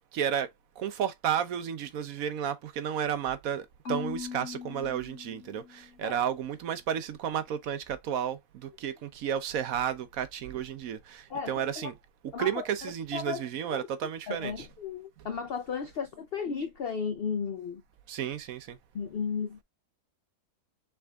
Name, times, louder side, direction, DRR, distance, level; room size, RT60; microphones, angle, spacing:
voice 1, 0.1-0.5 0.8-11.9 12.2-14.7 15.2-15.3 18.1-18.8, right 9 dB, 65° right, 1.0 m, -32 dB
Marimba xylophone / Wood, 3.8-6.0, left 6 dB, 50° left, 1.7 m, -40 dB
voice 2, 11.3-11.9 12.3-13.4 13.7-13.9 14.3-17.8 18.9-19.6, left 6 dB, 80° left, 0.5 m, -35 dB
5.8 x 3.6 x 2.3 m
omnidirectional pair, 1.7 m